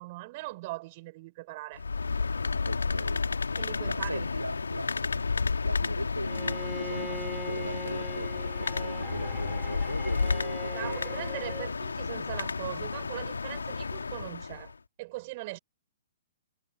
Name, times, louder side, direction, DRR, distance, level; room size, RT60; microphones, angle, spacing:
voice 1, 0.0-1.8 3.6-4.3 10.7-14.7 15.0-15.6, right 21 dB, 40° right, 4.6 m, -40 dB
sound 1, 1.8-14.7, left 4 dB, 70° left, 3.3 m, -32 dB
voice 2, 2.6-3.6 3.9-4.9 5.6-11.3, equal, 90° right, 3.2 m, -38 dB
Bowed string instrument, 6.2-11.8, equal, ahead, 3.4 m, -42 dB
figure-of-eight pair, 115°, 0 cm